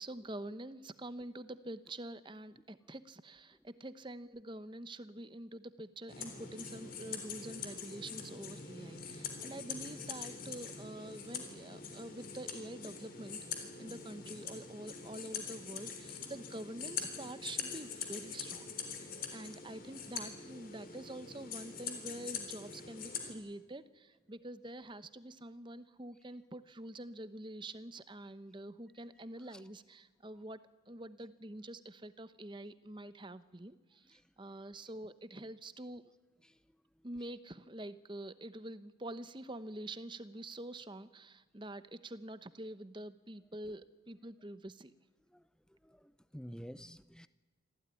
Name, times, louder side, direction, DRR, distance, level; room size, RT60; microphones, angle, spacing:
voice 1, 0.0-36.1 37.0-44.9, right 1 dB, 25° right, 13 dB, 0.9 m, -46 dB
sound 1, 6.1-23.3, left 6 dB, 45° left, 3.6 m, -44 dB
voice 2, 45.9-47.3, equal, 5° left, 14 dB, 0.7 m, -49 dB
26.0 x 15.5 x 9.8 m, 1.2 s
head